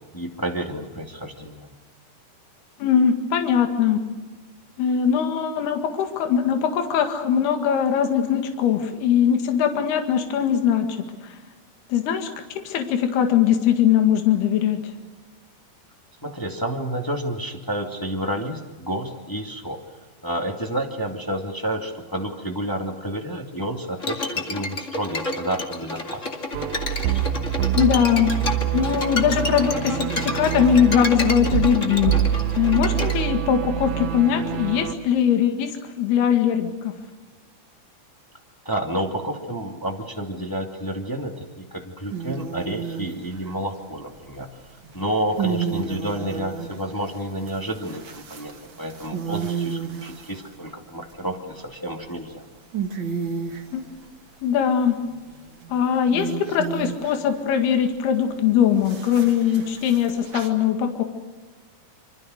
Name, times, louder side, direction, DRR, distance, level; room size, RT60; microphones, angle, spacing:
voice 1, 0.1-1.7 16.2-19.8 20.2-26.2 38.6-44.5 44.9-52.4, right 1 dB, 10° left, 1 dB, 1.0 m, -30 dB
voice 2, 2.8-4.0 4.8-10.9 11.9-12.3 12.6-14.8 27.8-28.3 28.7-32.1 32.6-35.7 36.0-36.9 53.7-53.8 54.4-55.0 55.7-61.0, left 8 dB, 75° left, 5 dB, 3.9 m, -21 dB
Bowed string instrument, 24.0-33.2, left 2 dB, 25° left, 1.7 m, -30 dB
sound 1, 26.5-34.9, right 11 dB, 75° right, 2.6 m, -26 dB
sound 2, 42.1-43.5 44.8-50.7 51.3-52.0 52.4-52.5 52.7-53.7 55.0-57.4 58.8-60.5, right 6 dB, 35° right, 2.1 m, -32 dB
26.5 x 25.5 x 6.5 m, 1.3 s
omnidirectional pair, 4.7 m